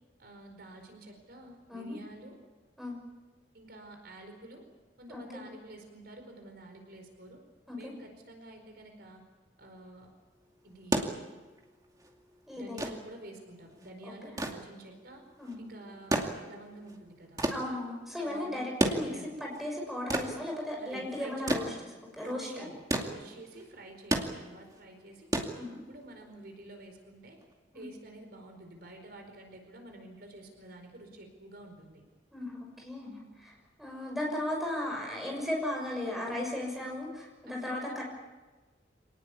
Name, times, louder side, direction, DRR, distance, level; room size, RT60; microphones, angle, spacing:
voice 1, 0.2-2.4 3.5-4.6 5.0-7.4 7.7-9.2 9.6-10.1 10.6-11.1 12.5-15.2 15.6-16.2 16.5-17.4 18.2-18.7 18.9-19.4 20.7-21.8 22.2-25.3 25.9-27.4 27.7-32.0 37.5-38.0, right 1 dB, 55° right, 4 dB, 4.7 m, -49 dB
voice 2, 5.1-5.4 7.7-7.9 12.5-12.8 15.4-15.6 17.5-19.1 19.4-21.7 22.1-22.7 25.5-25.8 27.7-27.9 32.3-33.5 33.8-38.0, left 1 dB, ahead, -1 dB, 6.4 m, -36 dB
sound 1, 10.7-26.2 27.4-27.5, right 1 dB, 20° right, 2.4 m, -34 dB
27.0 x 19.0 x 8.6 m, 1.2 s
head